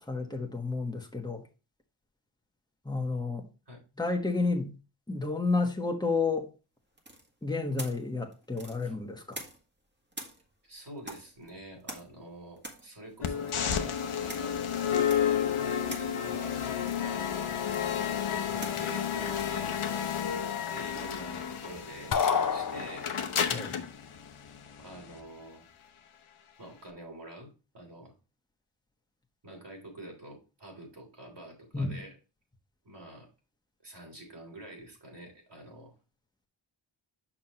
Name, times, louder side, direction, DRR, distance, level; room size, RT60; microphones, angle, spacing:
voice 1, 0.1-1.4 2.8-3.5 4.0-4.7 5.1-6.5 7.4-9.4 23.5-23.7 31.7-32.0, left 3 dB, 10° left, 1.4 m, -31 dB
sound 1, 7.0-9.8 10.1-21.1, right 1 dB, 20° right, 1.7 m, -47 dB
voice 2, 10.6-16.6 16.9-17.6 18.5-23.1 24.8-25.6 26.6-28.1 29.4-32.1 32.8-33.3 33.8-35.9, right 1 dB, 55° right, 3.3 m, -46 dB
sound 2, 13.2-25.2, left 8 dB, 85° left, 0.9 m, -31 dB
sound 3, 22.1-23.4, left 6 dB, 45° left, 0.7 m, -28 dB
6.3 x 5.8 x 3.0 m
wide cardioid pair, 75°, 49 cm